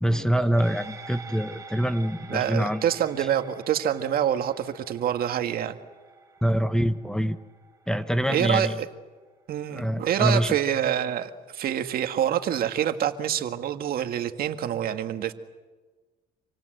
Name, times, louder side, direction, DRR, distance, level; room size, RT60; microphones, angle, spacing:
voice 1, 0.0-2.8 6.4-7.4 7.9-8.8 9.7-10.6, equal, 5° left, 1.1 m, -25 dB
sound 1, 0.6-9.3 9.7-9.8, right 4 dB, 20° right, 4.5 m, -47 dB
voice 2, 2.3-5.8 8.3-8.7 9.5-15.3, right 10 dB, 60° right, 1.9 m, -26 dB
28.0 x 25.5 x 7.9 m
cardioid pair, 110°, 17 cm